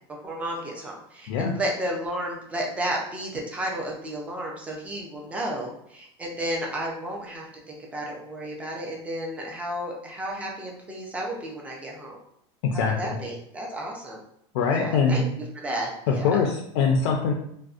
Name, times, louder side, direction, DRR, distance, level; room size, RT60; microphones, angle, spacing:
voice 1, 0.2-12.2 12.7-14.2 14.7-15.2 15.6-16.5, right 1 dB, 10° right, -1 dB, 0.4 m, -32 dB
voice 2, 12.6-13.2 14.5-15.2 16.1-17.3, left 5 dB, 75° left, 0 dB, 0.4 m, -23 dB
2.5 x 2.1 x 2.4 m, 0.71 s
supercardioid pair, 155°, 14 cm